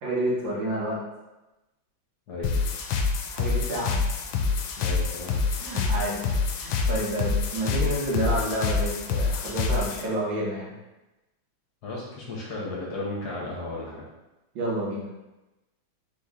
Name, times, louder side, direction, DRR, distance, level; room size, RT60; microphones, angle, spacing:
voice 1, 0.0-1.0 3.3-4.0 5.6-6.2 6.6-10.7 14.6-15.0, right 1 dB, 75° right, -6 dB, 2.0 m, -29 dB
sound 1, 2.4-10.0, left 4 dB, 80° left, 1.3 m, -26 dB
voice 2, 4.8-5.4 11.8-14.0, left 2 dB, 60° left, -4 dB, 1.4 m, -34 dB
4.1 x 3.0 x 3.6 m, 1.0 s
omnidirectional pair, 2.1 m